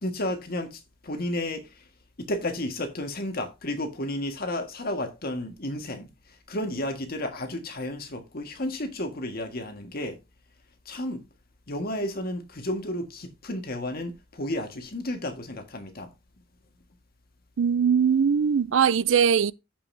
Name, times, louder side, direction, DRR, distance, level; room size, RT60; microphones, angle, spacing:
voice 1, 0.0-1.7 2.2-6.1 6.5-10.2 10.8-11.2 11.7-16.1, left 1 dB, 50° left, 1.7 m, -32 dB
voice 2, 17.6-19.5, right 7 dB, 80° right, 0.4 m, -21 dB
14.5 x 5.5 x 2.7 m
head